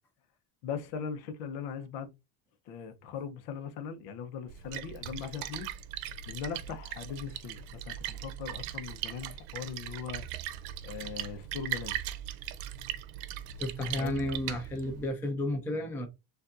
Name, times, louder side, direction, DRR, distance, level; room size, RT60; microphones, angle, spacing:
voice 1, 0.6-2.1 2.7-5.7 6.3-10.3 10.8-12.0 14.0-14.2, left 7 dB, 70° left, 1.0 m, -39 dB
Splash splatter, 4.5-15.1, right 12 dB, 75° right, 0.8 m, -39 dB
voice 2, 13.6-16.1, left 1 dB, 5° left, 0.4 m, -32 dB
6.9 x 2.6 x 2.6 m
cardioid pair, 150°, 49 cm